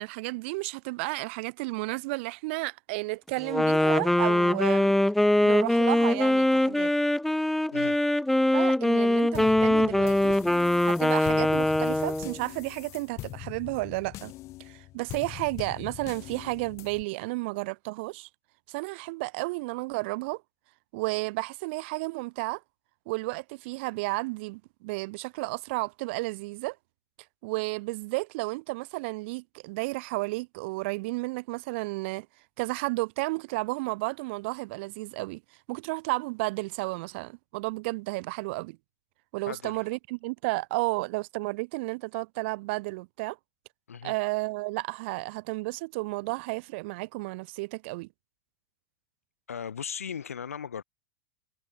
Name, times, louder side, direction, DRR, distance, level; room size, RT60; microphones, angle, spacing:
voice 1, 0.0-4.9 5.4-6.9 8.5-10.3 10.8-14.3 14.6-18.3 18.7-20.4 20.9-22.6 23.0-26.8 27.4-32.3 32.6-35.4 35.7-38.8 39.3-43.4 44.0-48.1, right 25 dB, 50° right, 1.6 m, -32 dB
Wind instrument woodwind instrument, 3.4-12.4, left 1 dB, 5° left, 1.0 m, -23 dB
sound 1, 9.3-17.0, left 17 dB, 40° left, 3.3 m, -42 dB
voice 2, 39.4-39.8 43.9-44.1 49.5-50.8, left 7 dB, 70° left, 4.7 m, -37 dB
figure-of-eight pair, 85°, 8 cm